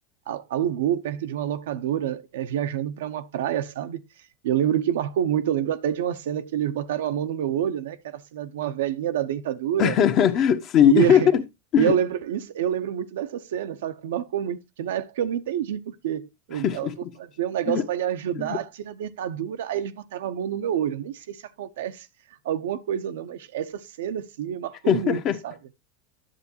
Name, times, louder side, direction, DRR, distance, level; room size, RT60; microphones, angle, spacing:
voice 1, 0.3-4.0 4.4-10.0 10.8-11.3 11.7-16.9 17.2-22.1 22.4-25.6, right 10 dB, 80° right, 0.7 m, -27 dB
voice 2, 9.8-11.4 11.7-11.9 16.5-16.9 17.7-17.8 18.4-18.6 24.9-25.4, left 8 dB, 45° left, 1.1 m, -20 dB
10.0 x 7.0 x 2.7 m
hypercardioid pair, 105°, 0 cm